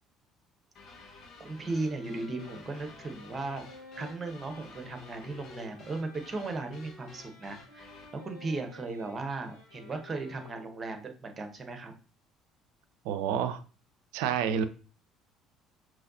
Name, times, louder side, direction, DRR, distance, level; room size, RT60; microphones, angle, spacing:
sound 1, 0.7-8.2, left 3 dB, 45° left, 1.1 m, -53 dB
voice 1, 1.4-3.6 4.0-11.9, right 3 dB, 30° right, 6 dB, 1.0 m, -37 dB
sound 2, 1.5-11.0, left 3 dB, 85° left, 1.4 m, -52 dB
voice 2, 13.0-13.6 14.1-14.6, right 8 dB, 65° right, 11 dB, 0.4 m, -28 dB
5.5 x 3.1 x 2.7 m, 0.38 s
figure-of-eight pair, 55°, 0 cm